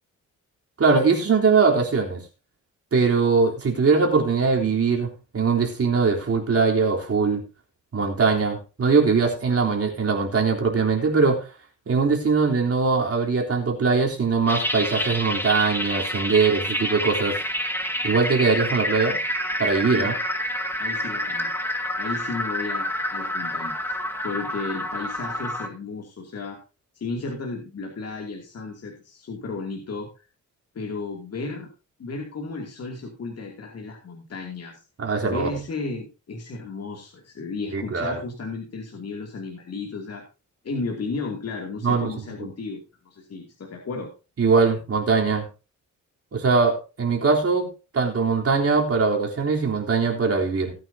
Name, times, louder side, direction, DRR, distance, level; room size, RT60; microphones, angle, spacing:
voice 1, 0.8-2.2 2.9-7.4 7.9-11.5 11.9-17.4 18.0-19.2 19.6-20.1 35.0-35.5 37.7-38.2 41.8-42.1 44.4-45.4 46.3-47.7 47.9-50.7, right 4 dB, 50° right, 0 dB, 3.6 m, -21 dB
sound 1, 14.5-25.7, equal, 5° left, 1.8 m, -28 dB
voice 2, 20.8-21.5 22.0-23.8 24.2-26.6 26.9-30.2 30.7-31.7 32.0-34.8 35.2-40.2 40.6-44.1, left 3 dB, 55° left, 1 dB, 2.7 m, -34 dB
18.0 x 9.1 x 2.8 m, 0.31 s
wide cardioid pair, 125°, 31 cm